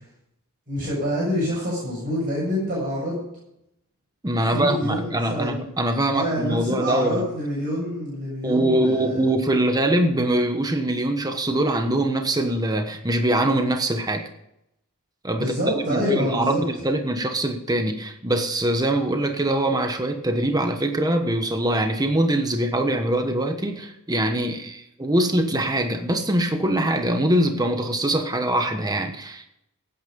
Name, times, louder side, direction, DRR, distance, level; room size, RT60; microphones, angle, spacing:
voice 1, 0.7-3.2 4.5-5.7 6.1-9.2 15.4-16.6, equal, 40° right, -5 dB, 7.2 m, -26 dB
voice 2, 4.2-7.2 8.4-14.2 15.2-15.5 15.9-29.5, right 1 dB, 15° right, 5 dB, 1.1 m, -23 dB
16.0 x 9.7 x 5.3 m, 0.80 s
head